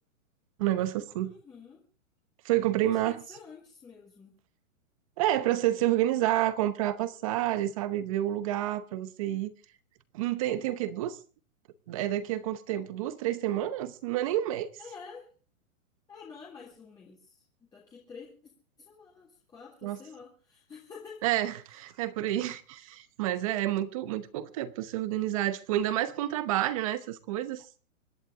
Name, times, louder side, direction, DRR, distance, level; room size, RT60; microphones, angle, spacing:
voice 1, 0.6-1.3 2.4-3.2 5.2-9.5 10.1-11.2 11.9-14.7 19.8-20.0 21.2-27.7, right 13 dB, 25° right, 0.8 m, -29 dB
voice 2, 1.2-1.8 2.8-4.3 14.8-15.3 16.1-17.4 17.7-18.3 18.8-21.2, left 5 dB, 10° left, 1.9 m, -49 dB
25.5 x 11.0 x 3.7 m
hypercardioid pair, 165°, 41 cm